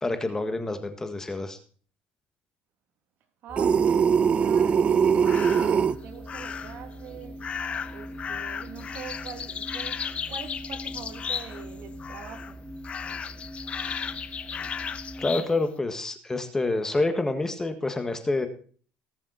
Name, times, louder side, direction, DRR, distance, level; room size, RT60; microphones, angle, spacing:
voice 1, 0.0-1.6 15.2-18.5, left 2 dB, 15° left, 1.7 m, -27 dB
voice 2, 3.4-7.4 7.9-12.6, right 8 dB, 60° right, 2.5 m, -44 dB
sound 1, 3.5-15.3, right 1 dB, 5° right, 3.2 m, -42 dB
sound 2, 3.6-6.0, right 7 dB, 35° right, 0.7 m, -21 dB
sound 3, 5.2-5.8 6.3-6.8 7.4-11.7 12.0-12.5 12.8-15.5, left 7 dB, 35° left, 0.9 m, -35 dB
19.0 x 7.2 x 4.1 m
cardioid pair, 115°, 4 cm